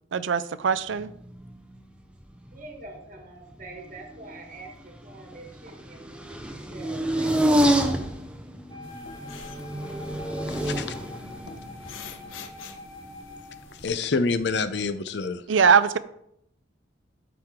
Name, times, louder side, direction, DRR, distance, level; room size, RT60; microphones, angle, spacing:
voice 1, 0.1-1.1 15.5-16.0, right 6 dB, 70° right, 14 dB, 0.5 m, -21 dB
sound 1, 0.9-1.9 2.2-3.1 3.5-13.8 14.4-14.9, right 1 dB, 5° right, 0.6 m, -29 dB
voice 2, 2.5-7.8, right 2 dB, 40° right, 2 dB, 1.3 m, -45 dB
Wind instrument woodwind instrument, 8.7-13.7, left 3 dB, 25° left, 1.8 m, -45 dB
sound 2, 8.8-13.9, left 5 dB, 85° left, 0.9 m, -47 dB
voice 3, 10.5-11.0 13.8-15.4, left 4 dB, 60° left, 11 dB, 0.6 m, -27 dB
13.5 x 4.8 x 3.7 m, 0.76 s
head